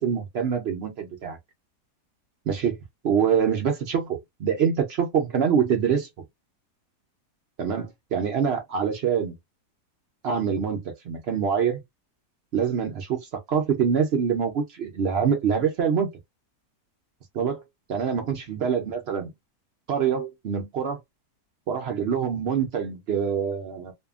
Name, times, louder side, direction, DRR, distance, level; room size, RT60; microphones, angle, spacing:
voice 1, 0.0-1.4 2.5-2.8 3.0-6.1 7.6-9.3 10.2-11.8 12.5-16.1 17.3-17.6 17.9-19.3 19.9-21.0 21.7-23.9, right 7 dB, 70° right, 0.6 m, -25 dB
2.7 x 2.3 x 2.3 m
omnidirectional pair, 1.7 m